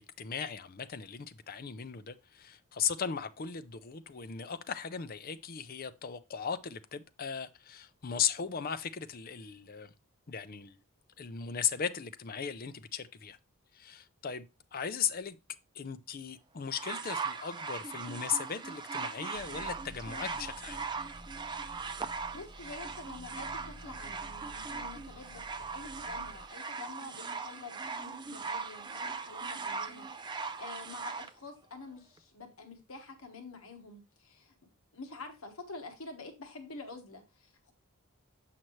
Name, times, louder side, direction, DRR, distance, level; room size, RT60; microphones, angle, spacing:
voice 1, 0.0-9.9 10.3-10.8 11.2-13.4 13.7-14.5 14.7-15.4 15.7-20.8, left 7 dB, 40° left, 0.5 m, -37 dB
sound 1, 16.7-31.3 32.2-32.3, right 4 dB, 20° right, 0.3 m, -39 dB
sound 2, 19.3-26.5, equal, 50° right, 1.7 m, -51 dB
voice 2, 22.3-30.3 30.5-34.5 34.9-37.7, left 3 dB, 65° left, 1.3 m, -47 dB
7.7 x 5.8 x 3.1 m
head